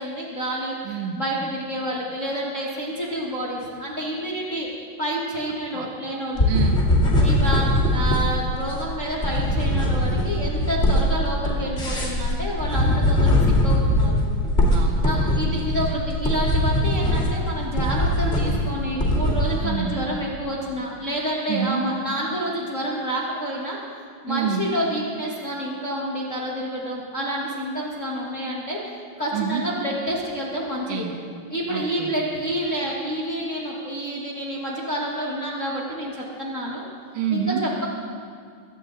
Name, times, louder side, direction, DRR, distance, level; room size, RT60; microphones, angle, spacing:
voice 1, 0.0-0.7 1.1-4.7 5.0-6.5 7.2-14.2 15.0-23.8 24.2-28.8 29.2-31.1 31.5-36.8 37.3-37.8, equal, 40° left, -5 dB, 1.1 m, -28 dB
voice 2, 0.8-1.2 5.7-5.9 6.5-6.9 14.7-16.0 19.6-20.0 21.5-21.9 24.3-24.7 29.3-29.6 30.9-31.2 31.7-32.1 37.1-37.6, right 7 dB, 90° right, 4 dB, 2.7 m, -28 dB
sound 1, 6.4-19.6, left 1 dB, 25° left, 2.3 m, -21 dB
23.5 x 9.1 x 3.9 m, 2.2 s
omnidirectional pair, 3.5 m